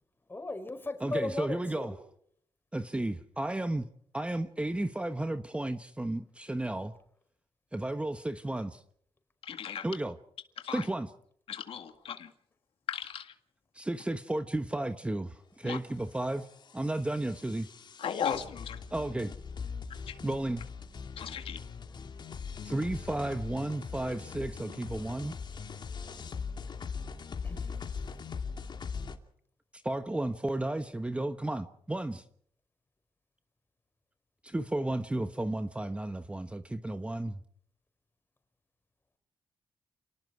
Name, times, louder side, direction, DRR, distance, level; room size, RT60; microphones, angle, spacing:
voice 1, 0.3-2.0 27.4-27.8, left 2 dB, 20° left, 6 dB, 5.2 m, -36 dB
voice 2, 1.0-1.9 2.7-3.8 4.1-6.9 7.7-8.8 9.8-10.2 10.7-11.1 13.7-16.5 16.7-17.7 18.9-19.3 20.2-20.6 22.6-25.3 29.7-32.2 34.4-37.4, right 1 dB, 10° right, 9 dB, 1.1 m, -33 dB
voice 3, 9.4-9.9 10.6-10.8 11.5-12.3 12.9-13.3 15.6-15.8 18.0-18.8 20.1-20.2 21.2-21.6, left 8 dB, 75° left, 6 dB, 2.0 m, -36 dB
sound 1, 15.9-29.2, left 5 dB, 50° left, 2.6 m, -41 dB
29.0 x 19.0 x 4.8 m, 0.64 s
cardioid pair, 95°, 9 cm